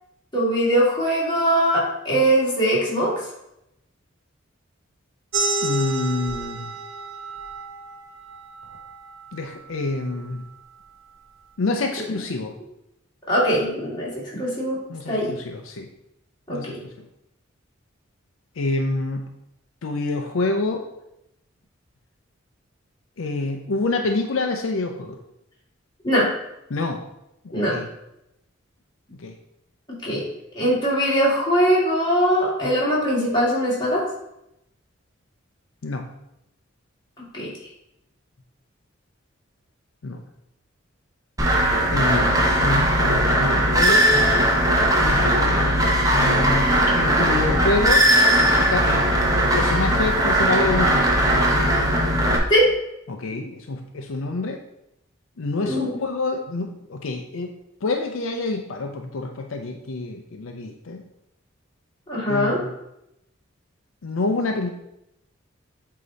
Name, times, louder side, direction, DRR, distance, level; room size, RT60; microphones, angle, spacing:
voice 1, 0.3-3.1 13.3-14.1 14.4-14.8 15.1-15.3 16.5-16.8 26.0-26.3 27.5-27.8 30.0-30.2 30.6-34.0 37.2-37.5 52.5-52.7 53.3-53.5 55.6-55.9 62.1-62.6, equal, 20° left, -6 dB, 2.0 m, -21 dB
sound 1, 5.3-10.5, right 2 dB, 65° right, 0.7 m, -31 dB
voice 2, 5.6-6.7 9.3-10.4 11.6-12.5 14.9-15.9 16.5-17.1 18.6-19.3 19.8-20.8 23.2-25.2 26.7-27.0 27.5-27.9 29.2-29.3 35.8-36.1 40.0-40.2 41.9-44.5 45.0-45.8 46.1-48.1 48.3-49.1 49.6-51.1 53.1-54.6 55.4-57.5 57.8-61.0 62.3-62.7 64.0-64.7, left 2 dB, 75° left, 4 dB, 0.5 m, -27 dB
sound 2, 41.4-52.4, right 1 dB, 15° right, 0.8 m, -19 dB
8.2 x 2.9 x 4.0 m, 0.84 s
head